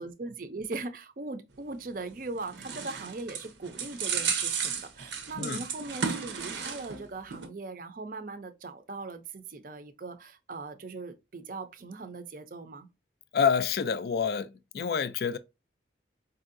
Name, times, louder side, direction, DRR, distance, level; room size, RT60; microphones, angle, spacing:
voice 1, 0.0-12.9, right 3 dB, 50° right, 0.5 m, -40 dB
sound 1, 2.1-7.0 7.3-7.5, right 6 dB, 90° right, 0.8 m, -33 dB
voice 2, 13.3-15.4, left 6 dB, 55° left, 0.4 m, -28 dB
4.7 x 2.7 x 2.5 m
head